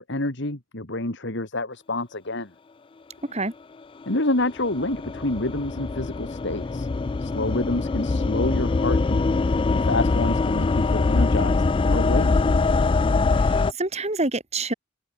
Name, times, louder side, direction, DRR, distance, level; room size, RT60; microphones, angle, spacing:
voice 1, 0.0-2.5 4.1-6.9 7.2-9.2 9.7-12.3, left 2 dB, 55° left, 2.4 m, -28 dB
sound 1, 4.0-13.7, left 3 dB, 25° left, 0.3 m, -23 dB
voice 2, 13.3-14.7, right 2 dB, 30° right, 2.8 m, -27 dB
head